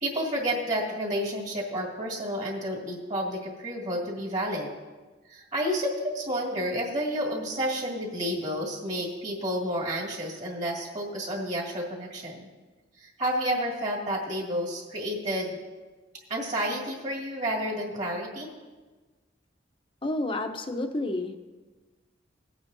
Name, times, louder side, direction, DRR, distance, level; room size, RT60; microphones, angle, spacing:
voice 1, 0.0-4.7 5.3-12.5 13.0-15.6 16.3-18.5, equal, 40° right, -2 dB, 2.2 m, -30 dB
voice 2, 20.0-21.4, left 2 dB, 30° left, 6 dB, 0.7 m, -30 dB
18.5 x 8.9 x 2.7 m, 1.3 s
head